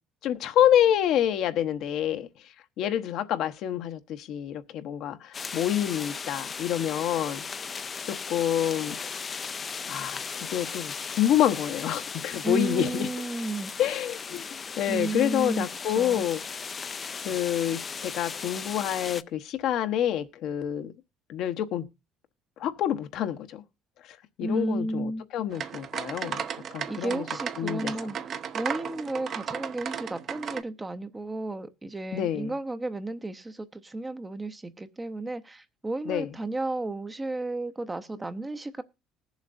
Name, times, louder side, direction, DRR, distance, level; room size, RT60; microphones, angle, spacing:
voice 1, 0.2-2.3 2.8-7.4 8.1-9.3 9.9-10.2 10.5-13.1 13.8-14.4 14.8-16.4 17.2-20.9 21.3-21.9 22.6-23.6 24.4-26.4 26.7-27.2 27.6-27.9 32.1-32.5 36.1-36.3, left 11 dB, 65° left, 0.9 m, -27 dB
sound 1, 5.3-19.2, left 5 dB, 25° left, 0.5 m, -37 dB
voice 2, 12.4-13.7 14.9-16.3 24.4-25.2 26.8-38.8, right 2 dB, 15° right, 0.7 m, -33 dB
sound 2, 25.5-30.6, right 7 dB, 45° right, 0.8 m, -35 dB
20.0 x 7.2 x 2.5 m
cardioid pair, 135°, 0 cm